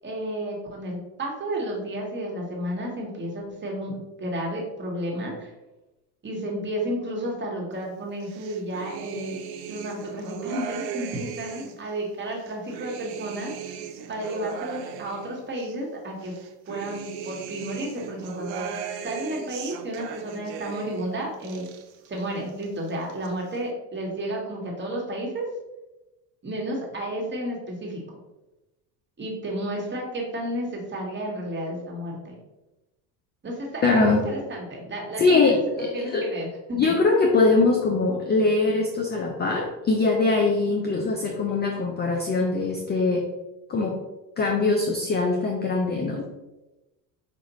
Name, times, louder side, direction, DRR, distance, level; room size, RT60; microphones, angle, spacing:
voice 1, 0.0-3.9 4.2-5.5 6.2-9.4 9.6-13.5 14.1-16.3 16.7-21.7 22.1-25.5 26.4-28.2 29.2-32.4 33.4-36.8, right 1 dB, 25° right, -1 dB, 1.3 m, -32 dB
sound 1, 8.2-11.9 12.3-15.8 16.2-21.1 21.3-22.2 22.5-23.3, right 7 dB, 80° right, 0.6 m, -37 dB
voice 2, 33.8-34.2 35.2-36.3 36.8-43.3 43.7-44.0 44.4-46.3, left 3 dB, 25° left, 2 dB, 0.4 m, -22 dB
5.0 x 2.4 x 3.0 m, 1.0 s
supercardioid pair, 85°, 49 cm